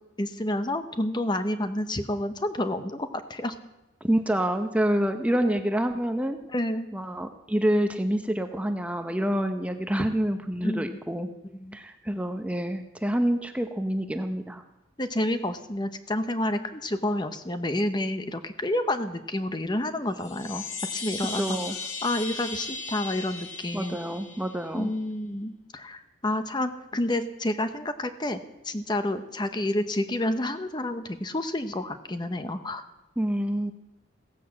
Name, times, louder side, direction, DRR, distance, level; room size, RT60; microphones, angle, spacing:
voice 1, 0.2-3.5 6.5-6.9 10.6-11.0 11.5-11.8 15.0-20.6 20.9-21.4 22.0-24.0 24.7-28.4 28.6-32.9, left 1 dB, 25° left, 9 dB, 0.8 m, -29 dB
voice 2, 4.0-6.4 6.9-11.3 11.7-14.6 21.3-21.8 23.7-24.9 33.2-33.7, right 1 dB, 5° right, 7 dB, 0.7 m, -27 dB
Chime, 20.1-24.8, left 3 dB, 70° left, 2.6 m, -37 dB
16.5 x 10.5 x 7.5 m, 0.97 s
head